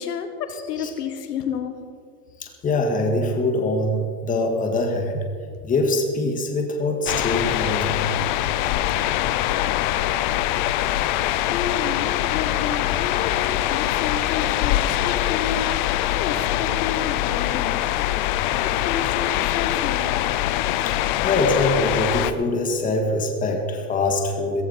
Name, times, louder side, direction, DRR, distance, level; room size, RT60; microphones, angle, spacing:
voice 1, 0.0-1.8 11.2-17.8 18.6-20.3, left 7 dB, 75° left, 8 dB, 1.7 m, -31 dB
voice 2, 2.4-5.3 5.6-8.2 20.8-21.0 21.2-24.6, left 2 dB, 15° left, 3 dB, 1.7 m, -23 dB
sound 1, 7.1-22.3, left 14 dB, 35° left, 0.4 m, -23 dB
16.0 x 15.0 x 4.1 m, 2.1 s
supercardioid pair, 140°, 47 cm